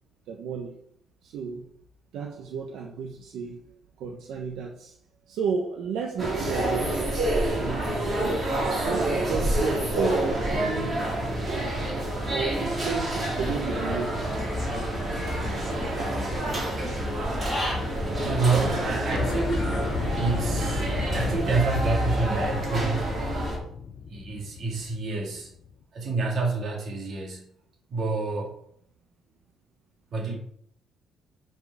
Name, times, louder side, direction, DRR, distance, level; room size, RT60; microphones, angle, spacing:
voice 1, 0.3-0.8 1.2-1.7 2.1-3.6 4.0-4.9 5.3-7.2 7.5-8.5 8.8-11.1 11.4-14.2, right 5 dB, 70° right, 1 dB, 1.0 m, -33 dB
sound 1, 6.2-23.6, right 1 dB, 20° right, 2.6 m, -28 dB
sound 2, 11.1-13.5 14.0-14.1 15.6-15.9 16.2-17.6 17.9-18.0 18.2-18.3 18.6-18.7 19.1-25.8, left 7 dB, 40° left, 0.5 m, -37 dB
Human voice / Bird, 13.7-21.3, left 1 dB, 15° left, 2.5 m, -34 dB
voice 2, 18.1-19.7 20.2-23.2 24.0-25.5 25.9-27.5 27.9-28.6 30.1-30.4, right 3 dB, 40° right, -1 dB, 2.3 m, -28 dB
10.5 x 4.7 x 4.8 m, 0.69 s
cardioid pair, 175°, 0 cm